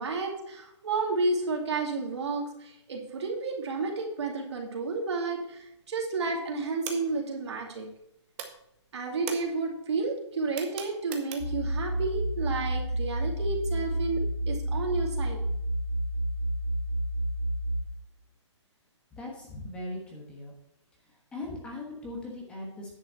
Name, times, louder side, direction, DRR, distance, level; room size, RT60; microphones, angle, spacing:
voice 1, 0.0-7.9 8.9-15.4, right 3 dB, 65° right, 1 dB, 2.5 m, -31 dB
sound 1, 5.6-6.1 6.3-8.1 8.3-11.7, right 8 dB, 20° right, 0.8 m, -42 dB
sound 2, 11.4-17.8, right 1 dB, 85° left, 1.9 m, -30 dB
voice 2, 19.1-20.5 21.3-22.9, left 2 dB, 5° left, -2 dB, 1.2 m, -39 dB
9.9 x 5.7 x 5.6 m, 0.79 s
hypercardioid pair, 170°, 16 cm